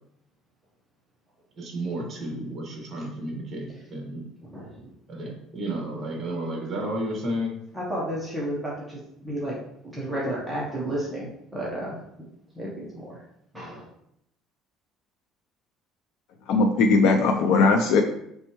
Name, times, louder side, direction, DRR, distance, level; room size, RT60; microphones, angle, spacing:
voice 1, 1.6-4.3 5.1-7.6, right 1 dB, 25° right, -1 dB, 1.4 m, -32 dB
voice 2, 4.4-4.9 7.7-9.6 9.8-12.0 12.5-13.2 13.5-13.9, right 1 dB, 5° right, -6 dB, 1.0 m, -32 dB
voice 3, 16.5-18.0, left 3 dB, 65° left, 3 dB, 0.4 m, -19 dB
5.2 x 3.3 x 3.0 m, 0.76 s
cardioid pair, 160°, 0 cm